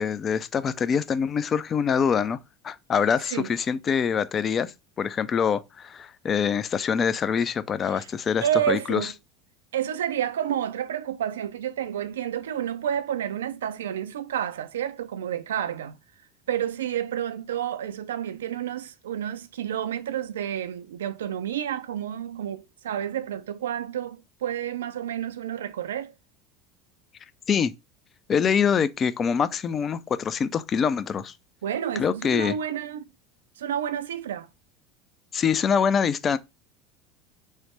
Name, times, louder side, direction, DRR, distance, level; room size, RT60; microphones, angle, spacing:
voice 1, 0.0-2.4 2.6-9.1 27.5-27.7 28.3-31.3 32.0-32.5 35.3-36.4, left 7 dB, 35° left, 0.3 m, -25 dB
voice 2, 8.4-9.1 9.7-16.0 16.5-26.1 31.6-33.1 33.6-34.5, right 10 dB, 90° right, 0.3 m, -30 dB
3.2 x 2.0 x 3.0 m
hypercardioid pair, 90°, 0 cm